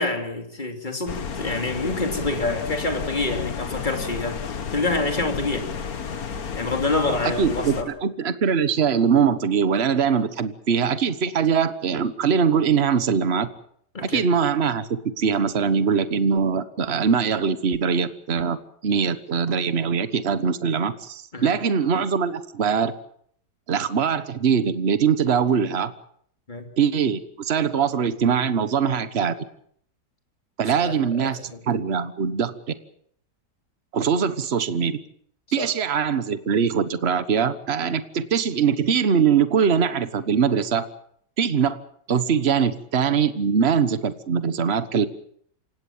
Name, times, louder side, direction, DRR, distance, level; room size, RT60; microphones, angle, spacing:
voice 1, 0.0-5.7 6.5-7.9 13.9-14.3 21.3-21.5 26.5-26.7 30.8-31.6 35.6-35.7, left 2 dB, 25° left, 4 dB, 3.2 m, -27 dB
AC cycle w fan, 1.1-7.8, left 6 dB, 60° left, 1.9 m, -32 dB
voice 2, 7.4-13.5 14.0-18.6 18.8-22.9 23.7-25.9 26.8-29.4 30.6-31.4 31.7-32.5 33.9-35.0 35.5-40.8 41.4-41.8 42.1-45.1, right 6 dB, 40° right, 12 dB, 1.4 m, -22 dB
27.5 x 17.5 x 7.3 m, 0.65 s
omnidirectional pair, 1.8 m